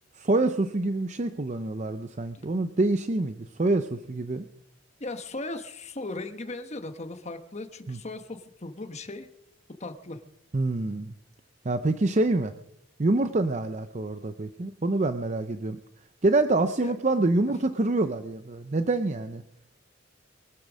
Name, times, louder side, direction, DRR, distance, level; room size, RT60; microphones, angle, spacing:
voice 1, 0.2-4.5 7.9-8.0 10.5-11.1 11.6-12.5 13.0-15.8 16.2-19.4, right 2 dB, 35° right, 9 dB, 0.6 m, -26 dB
voice 2, 5.0-9.3 9.8-10.2 16.8-17.0, left 2 dB, 35° left, 7 dB, 1.2 m, -37 dB
23.5 x 8.5 x 6.3 m, 0.80 s
head